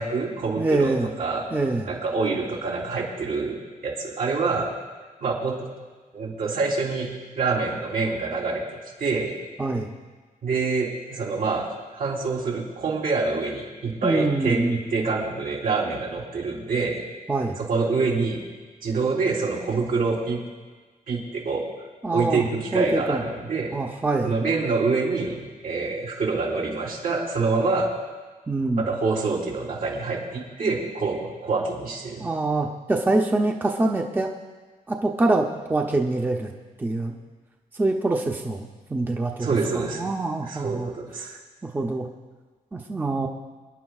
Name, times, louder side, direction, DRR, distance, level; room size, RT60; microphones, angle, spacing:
voice 1, 0.0-1.4 1.8-4.7 5.2-5.6 6.1-7.1 7.3-8.6 9.0-9.3 10.4-11.7 11.9-17.0 17.6-18.4 18.8-20.4 21.1-21.6 22.1-23.7 24.2-27.9 28.8-32.3 39.4-41.4, right 4 dB, 80° right, -4 dB, 3.5 m, -26 dB
voice 2, 0.6-1.1 1.5-1.9 9.6-9.9 14.0-14.8 17.3-17.6 22.0-22.5 22.7-23.2 23.7-24.3 28.5-28.8 32.2-34.3 34.9-36.5 36.8-37.1 37.7-40.9 41.6-42.1 42.7-43.3, right 2 dB, 15° right, 1 dB, 0.6 m, -25 dB
27.0 x 10.5 x 2.4 m, 1.4 s
wide cardioid pair, 175°, 15 cm